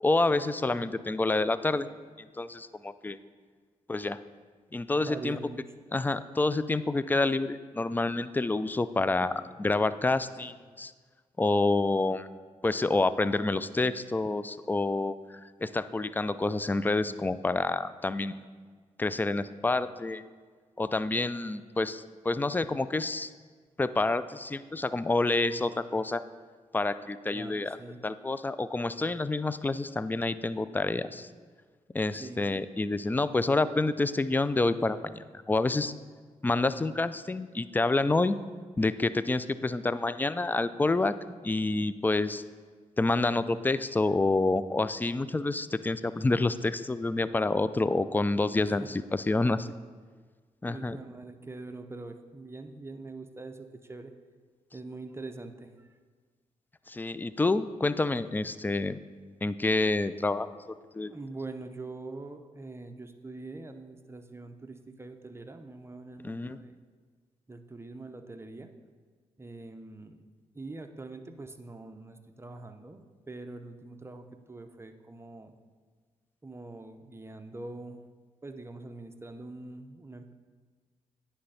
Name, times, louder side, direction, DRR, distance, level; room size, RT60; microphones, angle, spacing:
voice 1, 0.0-1.9 2.2-3.2 3.9-4.2 4.7-5.4 5.9-10.9 11.4-12.3 12.6-18.4 19.0-20.2 20.8-23.3 23.8-26.2 26.7-27.8 28.0-31.3 31.9-35.9 36.4-38.4 38.8-41.1 41.4-42.4 43.0-49.7 50.6-51.0 56.9-59.0 59.4-60.5 60.9-61.1 66.2-66.6, left 2 dB, 15° left, 14 dB, 0.3 m, -28 dB
voice 2, 5.0-5.6 27.3-28.0 32.2-32.5 48.7-48.9 50.6-54.1 54.7-55.9 61.1-66.8 67.5-68.7 69.4-70.2 70.5-75.6 76.4-78.0 78.4-80.3, right 2 dB, 20° right, 7 dB, 0.7 m, -43 dB
9.7 x 3.3 x 5.6 m, 1.5 s
supercardioid pair, 55°, 14 cm